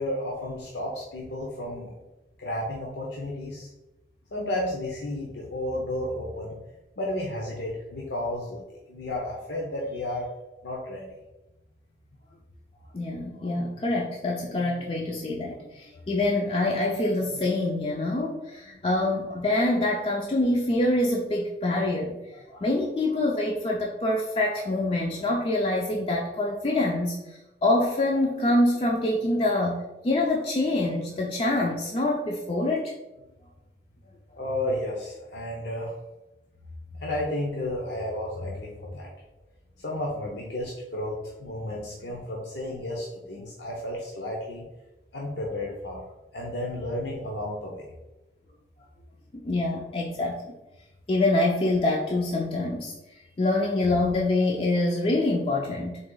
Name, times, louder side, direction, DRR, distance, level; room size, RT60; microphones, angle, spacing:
voice 1, 0.0-1.9 2.4-3.7 4.3-6.5 7.0-8.6 8.9-10.3 10.6-11.1 34.4-35.9 37.0-39.1 39.8-44.6 45.1-46.0 46.3-47.8, left 1 dB, 75° left, -3 dB, 0.7 m, -32 dB
voice 2, 12.9-32.9 49.3-50.4 51.1-52.9 53.4-56.0, left 2 dB, 30° left, -2 dB, 0.4 m, -25 dB
3.9 x 2.8 x 3.8 m, 1.0 s
head